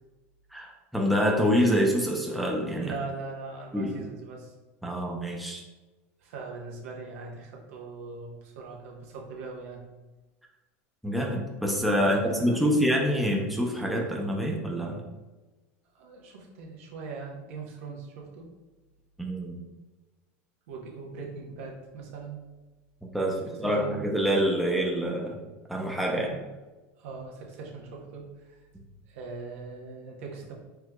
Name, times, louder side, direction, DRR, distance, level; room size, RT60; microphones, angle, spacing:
voice 1, 0.5-2.9 3.7-3.9 4.8-5.6 11.0-15.0 19.2-19.6 23.0-25.4 25.7-26.3, equal, ahead, -1 dB, 0.6 m, -26 dB
voice 2, 2.8-4.5 6.2-9.8 12.0-12.7 15.9-18.5 20.7-22.4 23.6-24.0 26.1-26.5 27.0-28.6 29.1-30.5, right 4 dB, 80° right, 0 dB, 0.9 m, -41 dB
4.6 x 3.5 x 2.2 m, 1.2 s
supercardioid pair, 120°, 7 cm